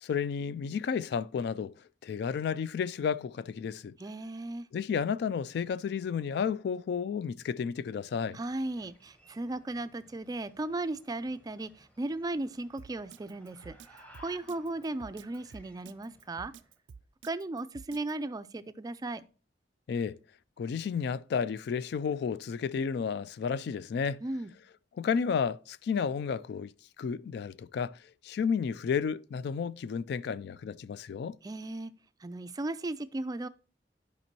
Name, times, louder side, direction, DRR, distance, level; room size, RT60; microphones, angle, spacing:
voice 1, 0.0-1.7 2.0-3.9 4.7-8.4 19.9-20.2 20.6-24.2 25.0-26.7 27.0-28.0 28.2-31.4, left 6 dB, 65° left, 0.3 m, -32 dB
voice 2, 4.0-4.7 8.3-16.5 17.2-19.2 24.2-24.5 31.4-31.9 32.2-33.5, right 2 dB, 20° right, 0.3 m, -36 dB
sound 1, 8.1-16.8, equal, 10° left, 0.9 m, -60 dB
Drum kit, 12.8-18.1, right 6 dB, 90° right, 0.4 m, -50 dB
11.0 x 5.2 x 2.9 m
head